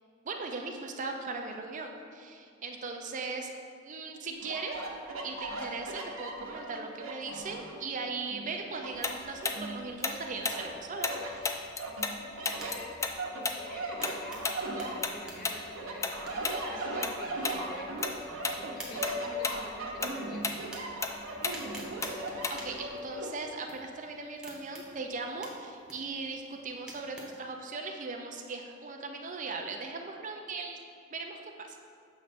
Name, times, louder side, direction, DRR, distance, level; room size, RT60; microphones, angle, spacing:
voice 1, 0.2-3.5 3.8-4.8 5.2-11.5 22.5-30.8 31.1-31.8, right 4 dB, 40° right, 3 dB, 0.5 m, -39 dB
sound 1, 4.4-7.9 8.3-10.1 10.5-11.3 11.8-15.4 15.7-23.3, right 1 dB, 85° right, 0.9 m, -38 dB
Tick-tock, 9.0-12.2 12.4-17.2 17.4-17.6 18.0-18.6 18.9-22.9, left 4 dB, 15° left, 0.3 m, -34 dB
voice 2, 11.9-20.5, left 1 dB, 45° left, 0 dB, 0.9 m, -47 dB
sound 2, 12.3-27.4, right 1 dB, 5° right, 1.0 m, -51 dB
7.5 x 3.2 x 5.8 m, 2.3 s
head